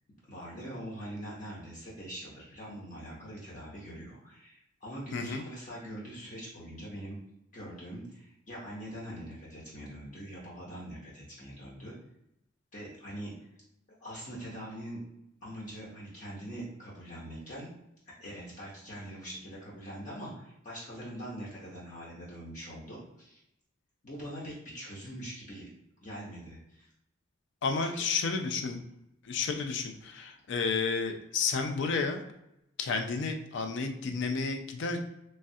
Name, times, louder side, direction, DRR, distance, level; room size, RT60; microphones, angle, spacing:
voice 1, 0.3-7.2 7.5-11.9 12.7-13.3 14.0-15.0 15.4-17.7 18.1-23.4 24.0-25.7 26.0-26.9 27.9-28.0, equal, 40° left, -6 dB, 0.8 m, -43 dB
voice 2, 5.1-5.4 27.6-28.8 29.2-32.2 32.8-35.0, left 4 dB, 60° left, 5 dB, 0.4 m, -31 dB
3.1 x 2.3 x 2.7 m, 0.84 s
head